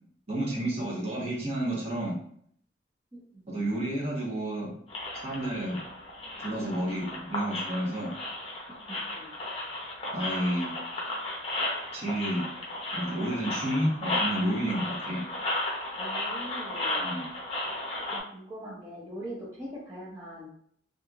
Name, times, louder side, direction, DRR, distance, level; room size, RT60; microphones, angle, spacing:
voice 1, 0.3-2.1 3.5-4.7 5.2-5.8 6.4-8.1 10.1-10.7 11.9-12.4 12.9-15.2 17.0-17.3, right 1 dB, 35° right, -5 dB, 1.1 m, -30 dB
sound 1, 4.9-18.2, left 1 dB, 35° left, 0.7 m, -34 dB
voice 2, 16.0-17.0 18.0-20.5, equal, 20° right, -8 dB, 0.6 m, -42 dB
3.1 x 2.7 x 2.4 m, 0.63 s
head